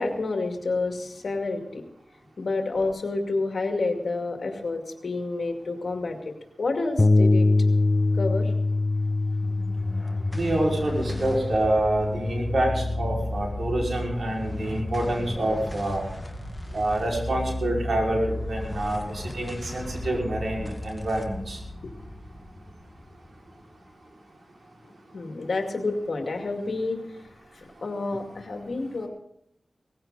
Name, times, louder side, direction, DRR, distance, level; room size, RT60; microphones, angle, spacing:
voice 1, 0.0-1.8 2.4-7.5 8.2-8.5 21.8-21.9 25.1-27.2 27.5-29.1, left 3 dB, 75° left, 3 dB, 2.4 m, -29 dB
Bass guitar, 7.0-13.2, left 2 dB, 35° left, 0.8 m, -24 dB
sound 1, 9.4-24.0, left 1 dB, 15° left, 2.0 m, -35 dB
voice 2, 10.3-16.0 16.7-21.6, right 1 dB, 75° right, -1 dB, 5.4 m, -27 dB
19.0 x 15.5 x 4.1 m, 0.74 s
wide cardioid pair, 55°, 0 cm